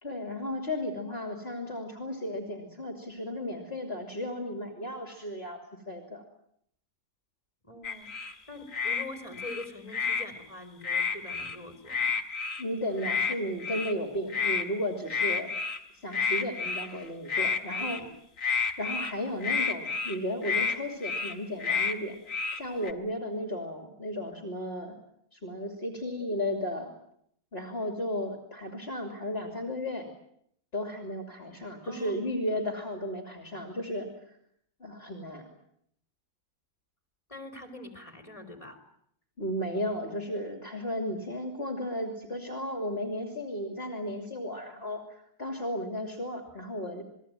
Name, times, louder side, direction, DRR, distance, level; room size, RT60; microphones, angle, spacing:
voice 1, 0.0-5.6 5.9-6.2 12.6-15.5 15.9-18.0 18.8-22.2 22.5-25.0 25.3-26.9 27.5-30.1 30.7-34.4 34.8-35.5 39.4-47.0, left 1 dB, 35° left, 4 dB, 3.1 m, -34 dB
voice 2, 7.6-12.1 17.7-18.1 31.8-32.2 37.3-38.8, left 2 dB, 20° left, 7 dB, 4.1 m, -44 dB
sound 1, 7.8-8.3 8.7-9.0 9.3-10.3 10.8-11.5 11.9-12.6 13.0-13.3 13.6-13.9 14.3-14.6 15.1-15.8 16.1-17.0 17.3-18.0 18.4-19.1 19.4-20.2 20.4-20.7 21.0-21.3 21.6-21.9 22.3-22.9, left 6 dB, 55° left, 2.4 m, -30 dB
28.5 x 21.0 x 9.2 m, 0.72 s
omnidirectional pair, 1.7 m